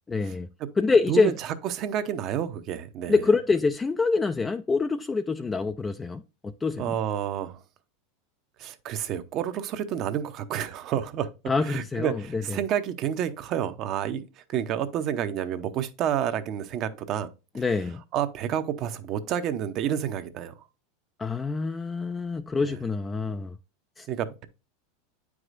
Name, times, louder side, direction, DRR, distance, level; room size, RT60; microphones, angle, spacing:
voice 1, 0.1-0.5 0.8-1.3 3.1-6.9 11.5-12.6 17.6-18.0 21.2-23.6 24.0-24.1, left 4 dB, 15° left, 0.3 m, -26 dB
voice 2, 1.1-3.2 6.8-7.6 8.6-11.3 11.6-17.3 18.1-20.5 22.6-22.7 24.1-24.5, right 9 dB, 45° right, 0.7 m, -29 dB
8.9 x 4.8 x 2.5 m
supercardioid pair, 115°, 0 cm